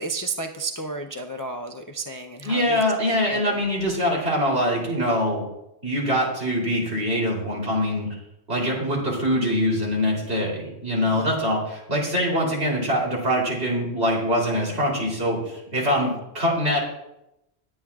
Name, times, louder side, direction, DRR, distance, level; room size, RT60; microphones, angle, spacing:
voice 1, 0.0-2.8 3.3-3.6 11.0-11.3 15.8-16.1, right 3 dB, 25° left, 3 dB, 0.5 m, -32 dB
voice 2, 2.4-5.4 5.8-8.1 8.5-16.8, equal, 70° right, -2 dB, 3.6 m, -23 dB
20.5 x 8.8 x 2.4 m, 0.86 s
omnidirectional pair, 1.1 m